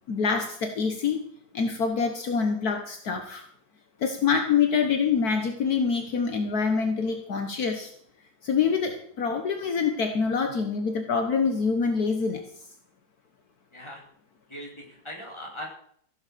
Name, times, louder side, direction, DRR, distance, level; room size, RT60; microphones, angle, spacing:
voice 1, 0.1-1.2 1.5-3.4 4.0-7.9 8.4-12.4, left 5 dB, 65° left, 5 dB, 1.7 m, -25 dB
voice 2, 14.5-15.6, equal, 15° left, -2 dB, 4.1 m, -40 dB
15.5 x 7.9 x 6.8 m, 0.63 s
omnidirectional pair, 1.7 m